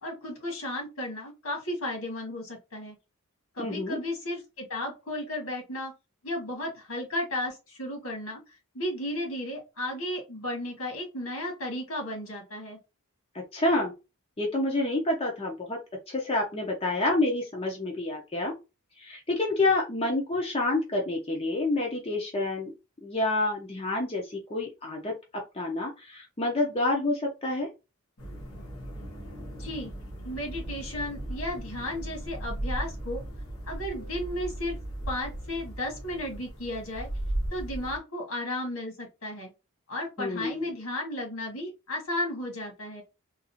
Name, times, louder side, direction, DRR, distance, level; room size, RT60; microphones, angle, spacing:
voice 1, 0.0-3.0 3.5-5.9 6.2-8.4 8.7-12.8 29.6-29.9 30.2-33.2 33.7-34.8 35.1-37.1 37.5-39.5 39.9-43.0, left 1 dB, 75° left, 1 dB, 1.9 m, -34 dB
voice 2, 3.6-4.0 13.3-13.9 14.4-15.8 16.1-18.5 19.0-22.7 23.0-27.7 40.2-40.7, left 2 dB, 25° left, 0 dB, 0.7 m, -28 dB
sound 1, 28.2-38.0, right 1 dB, 90° left, 1.7 m, -37 dB
3.8 x 2.6 x 2.7 m, 0.26 s
head